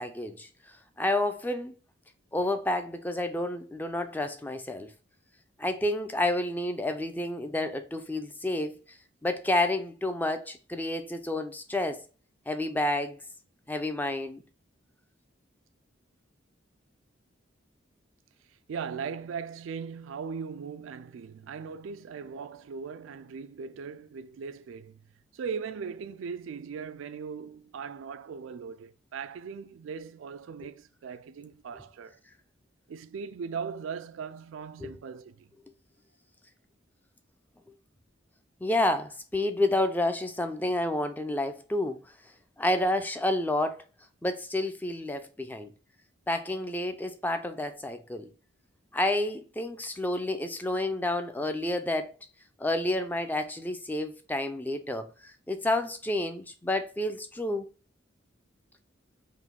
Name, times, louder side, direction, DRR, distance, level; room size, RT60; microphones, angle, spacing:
voice 1, 0.0-1.7 2.3-4.9 5.6-8.8 9.2-12.0 12.5-13.2 13.7-14.4 34.8-34.9 38.6-42.0 42.6-43.8 44.2-45.7 46.3-48.3 48.9-52.1 52.6-57.7, left 1 dB, 10° left, 0.3 m, -30 dB
voice 2, 18.7-25.0 25.3-32.2 32.9-35.5, right 6 dB, 85° right, 0.3 m, -39 dB
3.8 x 2.6 x 3.5 m
head